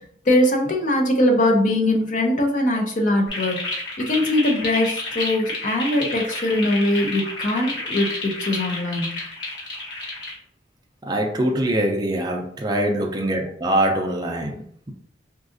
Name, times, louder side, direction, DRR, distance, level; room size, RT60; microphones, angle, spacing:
voice 1, 0.3-3.6 4.0-9.2, left 1 dB, 45° left, 2 dB, 0.6 m, -21 dB
sound 1, 3.3-10.3, left 2 dB, 85° left, 1.2 m, -30 dB
voice 2, 11.0-14.9, right 1 dB, 20° right, 1 dB, 0.4 m, -23 dB
3.9 x 2.5 x 2.5 m, 0.66 s
head